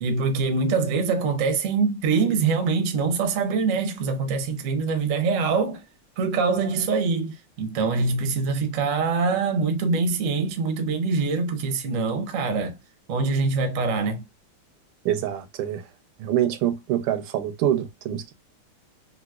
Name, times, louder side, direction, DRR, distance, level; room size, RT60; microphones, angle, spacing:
voice 1, 0.0-5.8 6.2-12.8 13.1-14.2, right 4 dB, 60° right, 0.8 m, -24 dB
voice 2, 15.0-15.8 16.2-18.3, right 11 dB, 85° right, 1.5 m, -25 dB
3.9 x 2.6 x 2.2 m
omnidirectional pair, 2.4 m